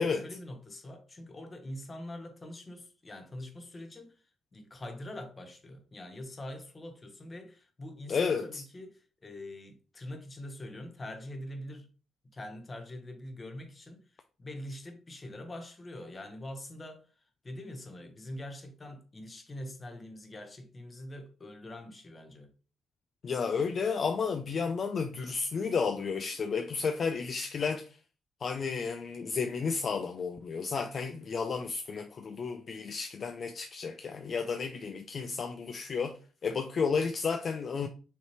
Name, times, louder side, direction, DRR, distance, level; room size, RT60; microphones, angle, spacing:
voice 1, 0.0-4.2 4.5-11.9 12.3-17.0 17.4-22.5, left 1 dB, 30° left, 1.0 m, -44 dB
voice 2, 8.1-8.6 23.2-28.0 28.4-37.9, left 5 dB, 50° left, 0.4 m, -32 dB
5.6 x 3.2 x 2.9 m
cardioid pair, 90°, 0 cm